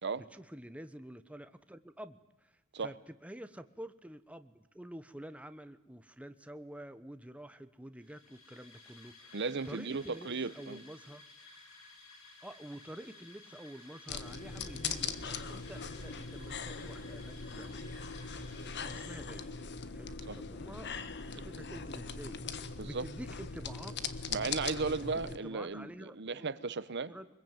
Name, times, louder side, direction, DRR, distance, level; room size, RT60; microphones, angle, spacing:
voice 1, 0.2-10.3 10.5-11.3 12.4-17.8 18.8-19.5 19.9-24.0 24.8-26.5 27.1-27.3, right 1 dB, 5° right, 10 dB, 1.0 m, -49 dB
sound 1, 8.0-19.8, left 3 dB, 75° left, 7.1 m, -56 dB
voice 2, 9.3-10.8 20.3-20.4 22.8-23.1 24.3-27.1, right 4 dB, 55° right, 15 dB, 1.0 m, -35 dB
sound 2, 14.1-25.4, left 5 dB, 55° left, 1.4 m, -40 dB
24.5 x 21.5 x 9.1 m, 0.94 s
head